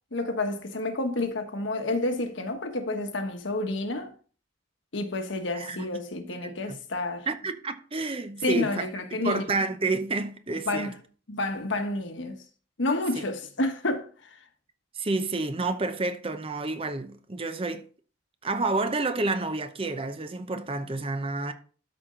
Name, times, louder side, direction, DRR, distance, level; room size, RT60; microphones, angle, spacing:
voice 1, 0.1-4.1 4.9-7.3 8.4-9.4 10.7-11.0 11.3-12.4 12.8-14.4, left 2 dB, 75° left, 1.3 m, -29 dB
voice 2, 5.5-5.9 6.4-6.8 7.3-10.9 13.2-13.3 14.9-17.8 18.4-21.5, right 3 dB, 30° right, 0.7 m, -30 dB
12.5 x 4.5 x 3.8 m
head